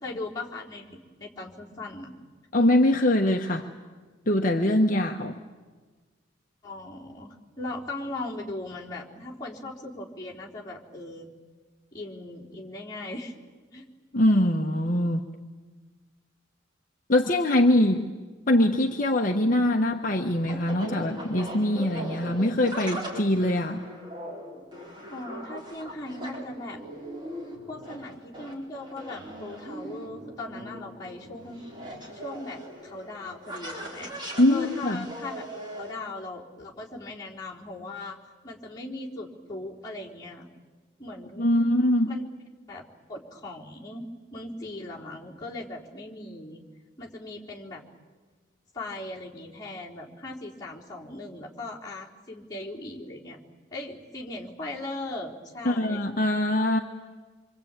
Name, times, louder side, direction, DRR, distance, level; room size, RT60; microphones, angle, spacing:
voice 1, 0.0-2.1 6.6-11.3 11.9-13.3 13.7-13.8 25.1-26.8 27.7-31.6 32.1-34.1 34.5-38.2 38.4-40.5 41.0-41.6 42.0-42.3 42.7-42.8 43.1-44.1 44.3-46.6 47.0-47.8 48.7-53.4 53.7-56.0, left 2 dB, 20° left, -4 dB, 3.8 m, -38 dB
voice 2, 2.5-3.7 4.3-5.4 14.1-15.3 17.1-18.1 18.5-23.9 34.4-35.0 41.4-42.1 55.6-56.8, left 1 dB, 45° left, 2 dB, 1.2 m, -23 dB
sound 1, 19.3-35.9, equal, 25° right, 5.2 m, -40 dB
26.5 x 25.5 x 9.0 m, 1.4 s
head